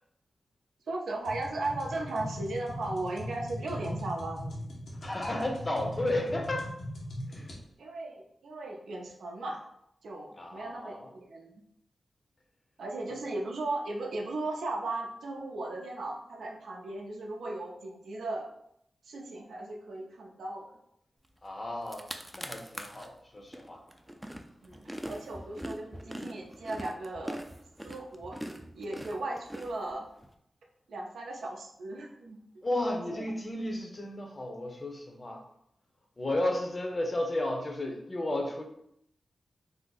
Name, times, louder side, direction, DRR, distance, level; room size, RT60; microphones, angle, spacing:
voice 1, 0.9-4.7 5.4-5.5 7.8-9.6 10.0-11.5 12.8-18.5 19.0-20.7 24.6-27.4 27.8-28.4 28.7-30.1 30.9-32.7 33.1-33.2, right 2 dB, 85° right, 0 dB, 0.5 m, -37 dB
sound 1, 1.3-7.6, equal, 80° left, 0.8 m, -39 dB
voice 2, 5.0-6.7 7.3-7.5 10.4-11.1 21.4-22.1 22.3-23.8 32.6-35.4 36.2-38.6, left 1 dB, 40° left, 3 dB, 0.6 m, -33 dB
sound 2, 21.5-21.6 21.8-23.1 23.5-30.3, equal, 10° right, 0.4 m, -42 dB
2.6 x 2.0 x 3.8 m, 0.75 s
cardioid pair, 45°, 0 cm